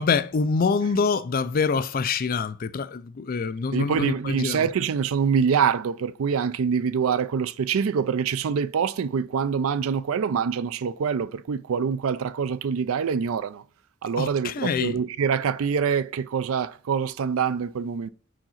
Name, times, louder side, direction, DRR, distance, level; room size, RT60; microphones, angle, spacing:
voice 1, 0.0-4.7 14.2-15.0, left 5 dB, 45° left, 0.4 m, -25 dB
voice 2, 3.7-13.6 14.0-18.1, right 6 dB, 80° right, 0.4 m, -25 dB
4.9 x 3.8 x 5.7 m
head